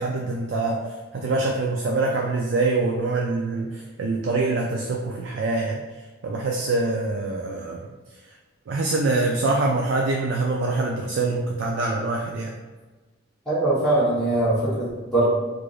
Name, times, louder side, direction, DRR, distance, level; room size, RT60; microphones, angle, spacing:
voice 1, 0.0-7.8 8.7-12.5, right 3 dB, 60° right, 0 dB, 0.3 m, -25 dB
voice 2, 13.5-15.3, right 1 dB, 5° left, -11 dB, 0.9 m, -21 dB
4.6 x 2.5 x 2.4 m, 1.3 s
head